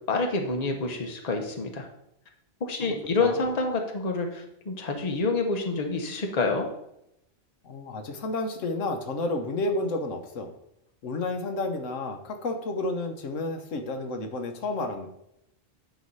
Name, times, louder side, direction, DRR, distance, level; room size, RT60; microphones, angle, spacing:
voice 1, 0.1-1.9 2.6-6.7, left 3 dB, 35° left, 3 dB, 1.0 m, -27 dB
voice 2, 2.8-3.5 7.6-10.5 11.0-15.1, left 2 dB, 85° left, 5 dB, 1.3 m, -31 dB
9.1 x 3.1 x 5.5 m, 0.78 s
omnidirectional pair, 1.3 m